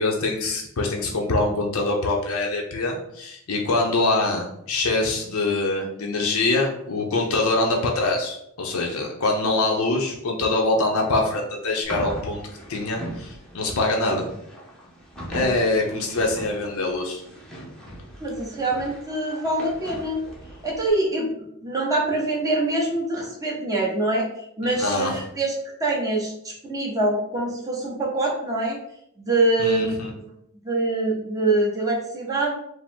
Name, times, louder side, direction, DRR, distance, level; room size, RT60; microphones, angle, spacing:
voice 1, 0.0-12.4 12.7-14.2 15.3-17.2 24.8-25.2 29.6-30.1, left 2 dB, 70° left, 0 dB, 0.7 m, -24 dB
sound 1, 11.8-20.9, equal, 5° left, 0.9 m, -39 dB
voice 2, 18.2-20.2 20.6-21.3 21.6-24.3 24.6-25.5 25.8-28.8 29.2-30.0 30.6-32.6, right 2 dB, 15° right, -5 dB, 1.2 m, -24 dB
4.8 x 2.1 x 3.6 m, 0.74 s
head